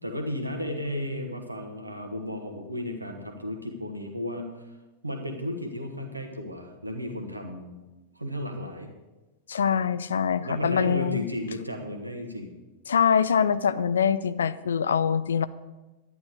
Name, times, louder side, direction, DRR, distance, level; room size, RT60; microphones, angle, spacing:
voice 1, 0.0-4.6 5.0-7.8 8.1-8.9 10.4-12.5, left 1 dB, 85° right, 4 dB, 1.5 m, -34 dB
voice 2, 9.5-11.2 12.9-15.5, left 7 dB, 70° left, 15 dB, 0.4 m, -24 dB
11.5 x 9.9 x 4.8 m, 1.1 s
figure-of-eight pair, 90°, 0 cm